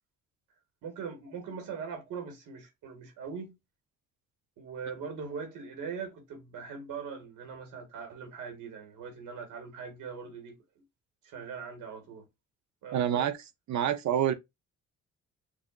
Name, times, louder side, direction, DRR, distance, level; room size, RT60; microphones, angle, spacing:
voice 1, 0.8-3.5 4.6-10.6 11.2-12.2 12.8-13.3, right 6 dB, 85° right, 1.7 m, -41 dB
voice 2, 12.9-13.4 13.7-14.3, right 10 dB, 65° right, 0.8 m, -27 dB
5.2 x 2.7 x 2.2 m
cardioid pair, 90°, 30 cm